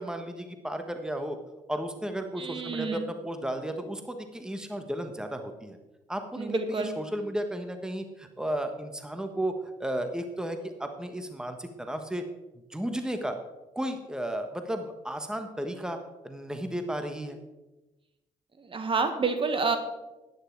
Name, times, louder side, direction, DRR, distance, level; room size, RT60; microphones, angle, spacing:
voice 1, 0.0-1.4 1.7-5.8 6.1-9.5 9.8-12.2 12.7-13.4 13.7-16.0 16.2-17.4, right 1 dB, 5° right, 6 dB, 1.4 m, -34 dB
voice 2, 2.4-3.0 6.4-6.9 18.6-19.8, right 4 dB, 40° right, 7 dB, 1.6 m, -28 dB
11.0 x 9.5 x 4.7 m, 1.1 s
supercardioid pair, 60°, 13 cm